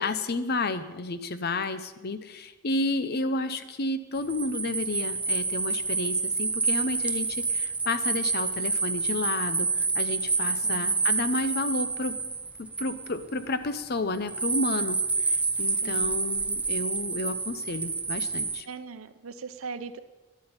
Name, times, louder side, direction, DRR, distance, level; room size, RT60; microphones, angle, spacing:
voice 1, 0.0-12.2 12.6-18.7, left 2 dB, 45° left, 12 dB, 0.8 m, -31 dB
sound 1, 4.1-13.4 14.3-18.6, right 4 dB, 5° right, 0.3 m, -28 dB
voice 2, 10.6-10.9 15.8-16.2 18.7-20.0, right 4 dB, 70° right, 12 dB, 0.8 m, -40 dB
11.5 x 8.4 x 8.8 m, 1.2 s
head